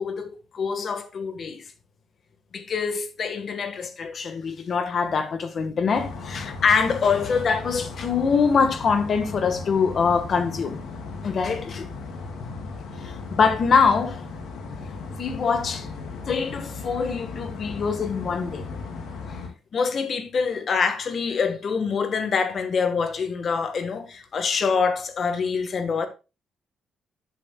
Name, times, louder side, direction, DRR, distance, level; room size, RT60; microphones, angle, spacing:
voice 1, 0.0-1.6 2.5-10.8 11.2-11.9 12.4-12.6 13.0-14.2 15.2-15.9 16.3-18.7 19.7-26.1, left 5 dB, 50° left, 1.5 m, -24 dB
sound 1, 5.9-19.5, left 4 dB, 75° left, 2.7 m, -36 dB
11.0 x 8.5 x 2.3 m
cardioid pair, 90°, 0 cm